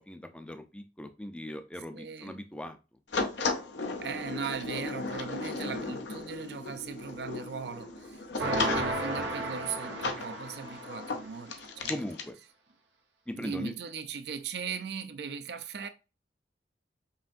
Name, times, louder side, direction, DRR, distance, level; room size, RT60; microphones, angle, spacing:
voice 1, 0.0-2.8 10.2-10.3 11.9-12.4 13.3-13.7, left 1 dB, 5° left, 0.4 m, -39 dB
voice 2, 1.9-2.4 4.0-12.0 13.3-15.9, right 6 dB, 65° right, 0.5 m, -38 dB
sound 1, 3.1-12.3, left 3 dB, 80° left, 0.6 m, -36 dB
sound 2, 8.4-11.1, right 2 dB, 85° right, 0.9 m, -33 dB
5.5 x 2.6 x 2.5 m
head